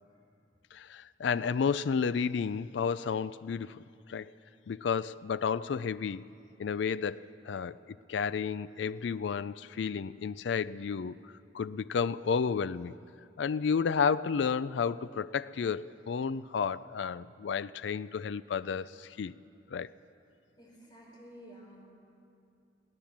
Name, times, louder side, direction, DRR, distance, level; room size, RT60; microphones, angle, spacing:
voice 1, 0.7-3.8 4.1-4.3 4.7-6.3 6.6-7.8 8.1-11.1 11.5-13.0 13.4-19.3 19.7-19.9, left 6 dB, 75° left, 16 dB, 0.4 m, -31 dB
voice 2, 20.6-21.9, equal, 25° left, -1 dB, 4.1 m, -52 dB
22.0 x 16.5 x 7.3 m, 2.6 s
head